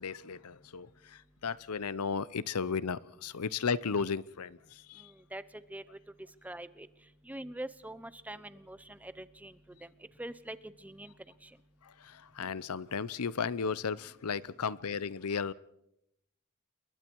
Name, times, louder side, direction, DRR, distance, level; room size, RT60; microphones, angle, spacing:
voice 1, 0.0-5.1 11.8-15.5, left 5 dB, 90° left, 20 dB, 0.7 m, -35 dB
voice 2, 5.0-5.4 5.7-6.0 6.4-6.9 7.2-9.9 10.2-11.1 11.4-11.5, right 1 dB, 5° right, 15 dB, 0.8 m, -44 dB
29.0 x 22.0 x 4.7 m, 0.81 s
head